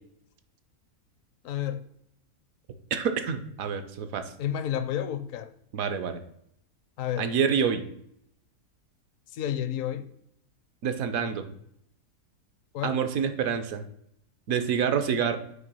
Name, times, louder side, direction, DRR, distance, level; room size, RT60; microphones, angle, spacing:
voice 1, 1.4-1.8 4.4-5.5 7.0-7.3 9.3-10.1 12.7-13.0, left 10 dB, 70° left, 0.9 m, -30 dB
voice 2, 2.9-4.3 5.7-6.2 7.2-7.9 10.8-11.5 12.8-13.9 14.5-15.4, right 7 dB, 70° right, 1.1 m, -27 dB
7.9 x 2.9 x 5.4 m
omnidirectional pair, 1.6 m